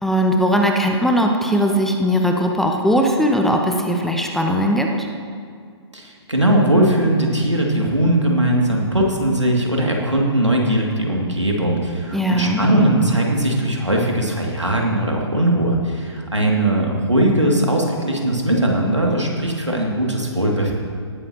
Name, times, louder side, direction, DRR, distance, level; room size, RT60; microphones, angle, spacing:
voice 1, 0.0-5.1 12.1-12.6, equal, ahead, 2 dB, 0.6 m, -19 dB
voice 2, 5.9-20.7, right 1 dB, 90° right, -1 dB, 2.5 m, -19 dB
18.0 x 13.0 x 3.0 m, 2.2 s
figure-of-eight pair, 125°, 15 cm